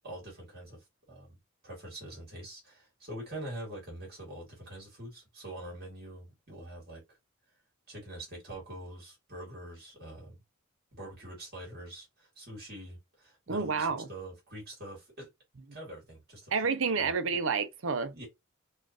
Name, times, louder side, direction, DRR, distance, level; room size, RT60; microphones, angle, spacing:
voice 1, 0.0-7.0 7.9-10.4 10.9-15.3 15.7-16.5 17.0-17.1 18.1-18.3, right 1 dB, 45° right, 2.1 m, -45 dB
voice 2, 13.5-14.1 16.5-18.2, right 5 dB, 65° right, 0.6 m, -29 dB
4.3 x 2.5 x 2.9 m
head